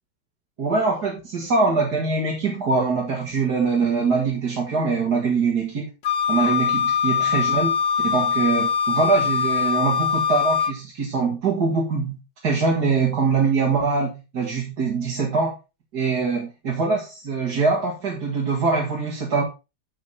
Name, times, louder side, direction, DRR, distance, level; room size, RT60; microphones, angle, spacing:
voice 1, 0.6-5.9 6.3-7.7 8.0-12.2 12.4-15.5 15.9-19.4, right 4 dB, 50° right, -4 dB, 2.6 m, -23 dB
Wind instrument woodwind instrument, 6.0-10.8, left 7 dB, 60° left, 1.4 m, -22 dB
10.5 x 5.3 x 4.2 m, 0.28 s
omnidirectional pair, 2.4 m